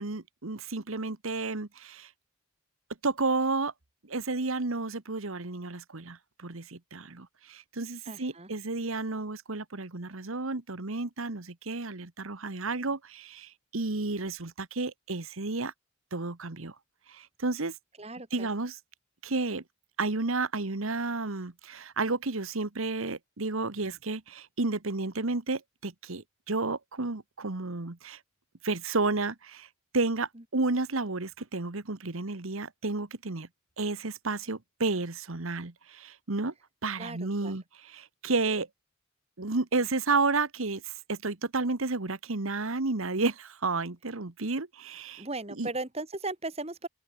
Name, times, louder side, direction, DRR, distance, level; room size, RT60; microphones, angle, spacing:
voice 1, 0.0-2.1 3.0-3.7 4.1-15.7 16.1-16.7 17.1-17.7 18.3-18.8 19.2-19.6 20.0-28.2 28.6-29.7 29.9-33.5 33.8-36.5 36.8-38.7 39.4-45.7, right 3 dB, 75° right, 1.4 m, -31 dB
voice 2, 8.1-8.5 18.0-18.5 37.0-37.6 45.2-46.9, right 2 dB, 30° right, 2.1 m, -37 dB
open air
head